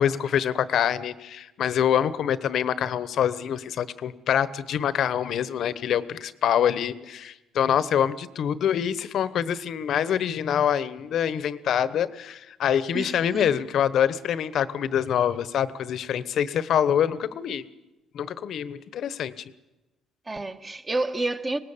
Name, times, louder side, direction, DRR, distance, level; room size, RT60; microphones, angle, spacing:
voice 1, 0.0-17.6 18.1-19.4, left 9 dB, 60° left, 1.1 m, -25 dB
voice 2, 12.9-13.5 20.3-21.6, right 2 dB, 20° right, 1.3 m, -29 dB
25.0 x 19.0 x 7.3 m
cardioid pair, 130°, 0 cm